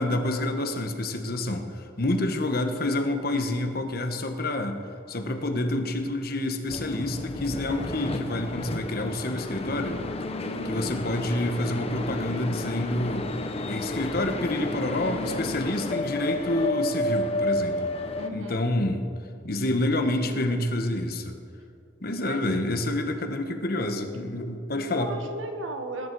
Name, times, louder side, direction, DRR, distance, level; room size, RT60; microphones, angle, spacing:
voice 1, 0.0-4.8 5.1-10.0 10.7-13.3 13.6-18.0 18.3-19.0 19.4-21.4 22.0-25.1, left 1 dB, 50° left, 6 dB, 1.2 m, -28 dB
sound 1, 6.7-18.3, left 2 dB, 30° left, 0.8 m, -31 dB
voice 2, 10.4-11.0 11.7-12.8 18.2-18.7 19.8-20.4 22.2-22.5 24.9-26.1, right 1 dB, 85° right, 5 dB, 1.6 m, -38 dB
20.5 x 10.5 x 4.7 m, 2.5 s
head